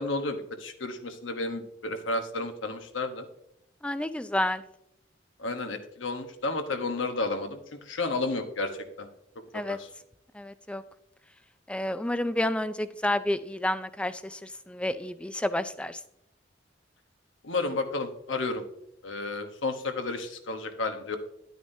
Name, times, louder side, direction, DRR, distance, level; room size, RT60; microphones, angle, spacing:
voice 1, 0.0-3.3 5.4-8.7 9.0-9.1 9.5-9.9 17.4-18.6 19.0-21.2, left 3 dB, 85° left, 7 dB, 1.1 m, -32 dB
voice 2, 3.8-4.6 9.5-9.8 10.3-10.8 11.7-16.0, left 1 dB, 5° left, 13 dB, 0.3 m, -30 dB
11.5 x 9.2 x 2.7 m, 0.78 s
head